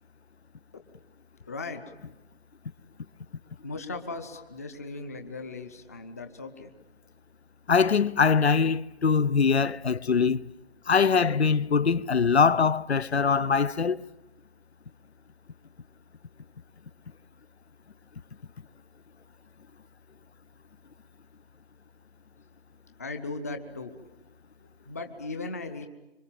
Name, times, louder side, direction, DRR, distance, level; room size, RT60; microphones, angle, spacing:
voice 1, 1.5-1.8 3.6-6.7 23.0-23.9 24.6-25.9, left 3 dB, 15° left, 0.8 m, -37 dB
voice 2, 7.7-10.5 10.9-14.1, left 5 dB, 80° left, 0.8 m, -23 dB
26.0 x 24.5 x 7.5 m
figure-of-eight pair, 165°, 32 cm